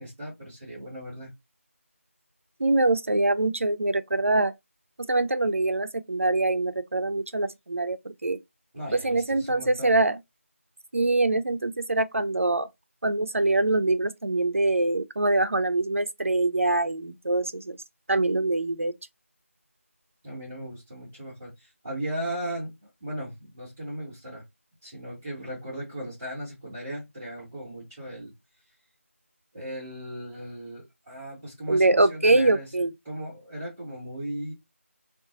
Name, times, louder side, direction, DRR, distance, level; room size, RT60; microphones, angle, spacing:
voice 1, 0.0-1.3 8.7-10.0 20.2-24.4 24.8-28.3 29.5-32.7 33.0-34.5, right 1 dB, 10° right, 0.8 m, -37 dB
voice 2, 2.6-4.5 5.1-8.4 8.9-10.2 10.9-12.7 13.0-17.8 18.1-18.9 31.7-32.9, right 2 dB, 65° right, 0.4 m, -24 dB
3.8 x 2.4 x 2.4 m
figure-of-eight pair, 170°, 8 cm